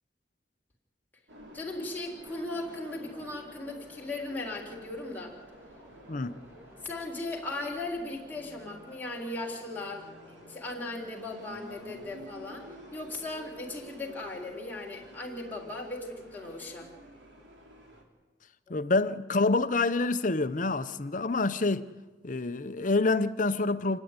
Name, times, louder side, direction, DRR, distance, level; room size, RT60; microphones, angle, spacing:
sound 1, 1.3-18.0, equal, 85° right, 3.4 m, -51 dB
voice 1, 1.5-5.4 6.8-16.9 18.7-18.8, left 2 dB, 10° left, 3.5 m, -38 dB
sound 2, 2.2-14.4, left 1 dB, 15° right, 2.3 m, -56 dB
voice 2, 18.7-21.9 22.2-24.0, left 3 dB, 45° left, 0.8 m, -27 dB
28.5 x 10.0 x 9.7 m
head